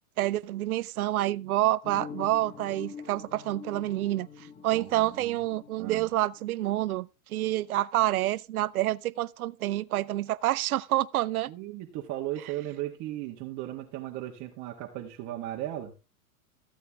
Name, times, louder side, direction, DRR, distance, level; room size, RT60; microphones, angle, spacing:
voice 1, 0.2-4.3 4.6-11.5, right 15 dB, 75° right, 0.8 m, -28 dB
sound 1, 1.8-6.6, left 6 dB, 20° left, 1.2 m, -45 dB
voice 2, 4.7-5.4 5.8-6.1 11.5-15.9, right 14 dB, 40° right, 1.7 m, -36 dB
15.0 x 8.3 x 3.5 m
hypercardioid pair, 115°, 44 cm